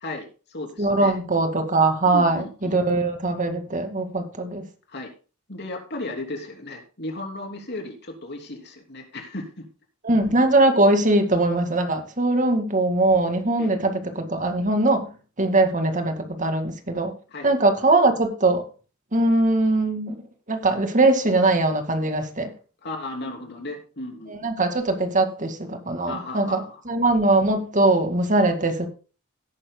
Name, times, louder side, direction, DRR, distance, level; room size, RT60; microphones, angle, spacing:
voice 1, 0.0-1.1 2.1-2.8 4.9-5.1 5.5-9.7 13.6-13.7 17.3-17.5 22.8-24.3 26.1-26.8, left 2 dB, 50° left, 3 dB, 3.2 m, -35 dB
voice 2, 0.8-4.7 10.0-15.1 15.4-17.1 17.4-18.6 19.1-20.2 20.5-22.5 24.3-28.9, right 2 dB, 35° right, 6 dB, 2.0 m, -21 dB
17.5 x 10.0 x 2.2 m, 0.36 s
head